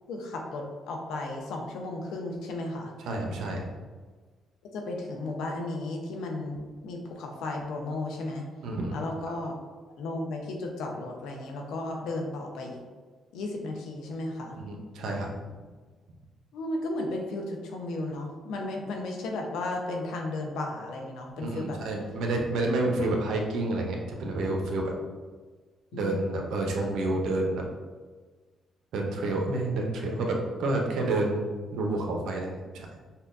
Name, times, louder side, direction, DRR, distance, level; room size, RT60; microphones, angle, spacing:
voice 1, 0.1-2.9 4.7-8.4 8.9-9.5 10.0-12.8 13.3-14.6 16.5-21.8 25.9-26.2, left 2 dB, 85° left, 1 dB, 0.6 m, -34 dB
voice 2, 3.0-3.7 8.6-8.9 9.3-9.4 14.6-15.3 21.4-24.9 25.9-27.6 28.9-32.9, right 2 dB, 80° right, 1 dB, 0.7 m, -29 dB
5.5 x 2.2 x 2.5 m, 1.4 s
cardioid pair, 90°, 0 cm